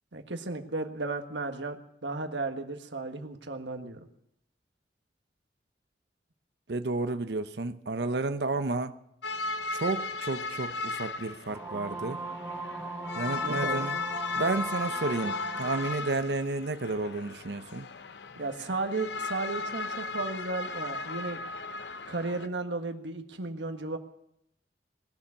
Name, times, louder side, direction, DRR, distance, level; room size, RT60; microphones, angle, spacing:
voice 1, 0.1-4.0 13.4-13.9 18.4-21.4 22.1-24.0, right 3 dB, 85° right, 1.6 m, -34 dB
voice 2, 6.7-9.0 9.7-12.2 13.1-14.0 14.3-17.9, right 3 dB, 65° right, 0.8 m, -31 dB
sound 1, 9.2-22.5, left 3 dB, 70° left, 0.7 m, -36 dB
sound 2, 11.5-16.0, right 3 dB, 15° right, 0.9 m, -38 dB
19.5 x 7.2 x 9.8 m
head